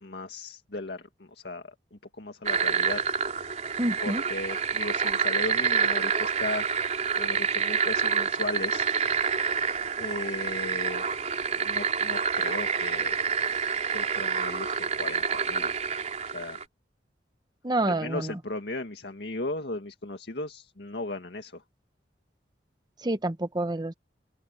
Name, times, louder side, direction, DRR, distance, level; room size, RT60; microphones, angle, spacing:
voice 1, 0.0-3.0 4.0-6.7 7.2-8.9 10.0-11.1 11.5-13.1 13.9-15.7 16.2-16.6 17.8-21.6, left 2 dB, 70° left, 2.1 m, -36 dB
sound 1, 2.4-16.6, right 6 dB, 40° right, 4.0 m, -28 dB
voice 2, 3.8-4.2 17.6-18.3 23.0-23.9, right 1 dB, 25° right, 1.1 m, -28 dB
open air
head